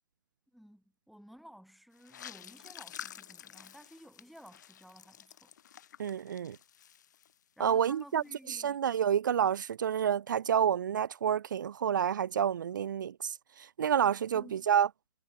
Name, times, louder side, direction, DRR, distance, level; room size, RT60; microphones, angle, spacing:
voice 1, 0.5-5.5 7.6-9.0 14.3-14.6, equal, ahead, 7.2 m, -53 dB
sound 1, 2.0-7.7 7.9-8.3, left 10 dB, 65° left, 1.2 m, -50 dB
voice 2, 6.0-6.6 7.6-8.2 8.5-14.9, right 8 dB, 80° right, 0.4 m, -29 dB
hypercardioid pair, 135°, 10 cm